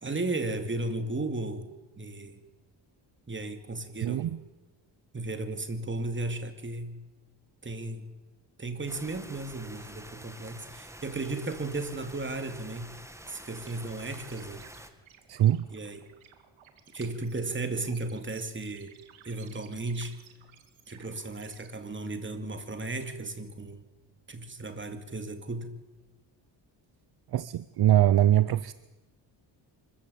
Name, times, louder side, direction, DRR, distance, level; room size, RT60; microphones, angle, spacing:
voice 1, 0.0-2.4 3.3-4.4 5.1-7.0 7.6-8.1 8.6-12.9 13.3-14.6 15.7-16.1 16.9-19.0 19.2-20.2 20.9-23.9 24.3-25.8, right 2 dB, 25° right, 8 dB, 2.6 m, -35 dB
voice 2, 4.0-4.4 15.3-15.7 27.3-28.7, right 12 dB, 55° right, 17 dB, 0.7 m, -23 dB
sound 1, 8.9-14.9, right 1 dB, 5° right, 2.0 m, -48 dB
sound 2, 13.5-21.7, right 9 dB, 90° right, 2.3 m, -57 dB
25.0 x 14.5 x 8.7 m, 1.1 s
cardioid pair, 90°, 45 cm